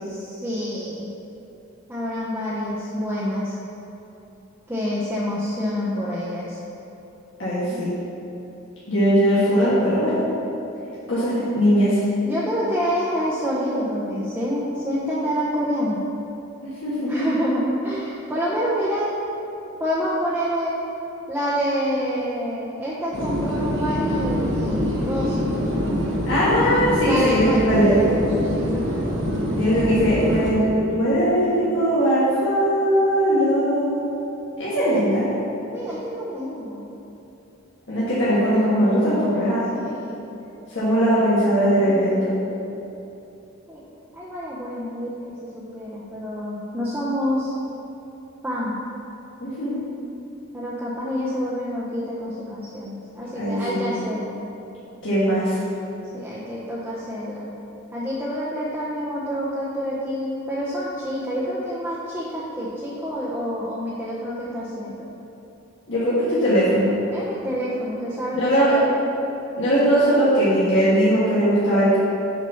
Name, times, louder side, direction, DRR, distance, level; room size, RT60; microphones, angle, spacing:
voice 1, 0.0-1.1 1.9-3.6 4.7-6.6 7.7-7.8 12.2-16.0 17.1-19.1 19.8-20.8 21.3-25.4 27.0-28.9 35.7-36.9 39.7-40.4 41.8-42.0 43.7-43.8 44.1-47.5 48.4-48.7 50.5-54.4 56.1-57.5 57.9-65.1 67.1-68.9, equal, 10° right, -8 dB, 0.7 m, -27 dB
voice 2, 7.4-7.9 8.9-10.2 11.1-12.0 16.6-17.3 26.3-28.0 29.6-34.0 34.6-35.2 37.9-39.6 40.7-42.3 49.4-49.8 53.3-53.9 55.0-55.6 65.9-66.9 68.3-68.8 69.6-72.0, equal, 65° left, -10 dB, 1.5 m, -20 dB
sound 1, 23.1-30.5, equal, 65° right, 1.1 m, -25 dB
6.2 x 4.1 x 5.6 m, 3.0 s
head